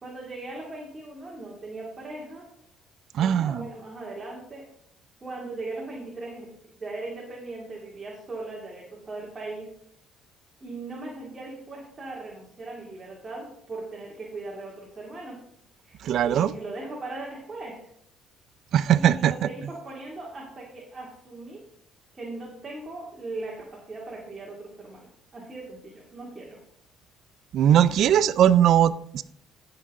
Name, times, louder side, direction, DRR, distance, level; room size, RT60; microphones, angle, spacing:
voice 1, 0.0-2.4 3.1-4.7 5.2-6.5 6.8-9.7 10.6-15.4 15.8-17.9 18.9-21.6 22.1-26.6, right 2 dB, 30° right, -3 dB, 2.5 m, -39 dB
voice 2, 3.1-3.7 16.0-16.5 18.7-19.7 27.5-29.2, right 10 dB, 65° right, 16 dB, 0.5 m, -20 dB
14.5 x 6.0 x 3.7 m, 0.71 s
cardioid pair, 100°, 0 cm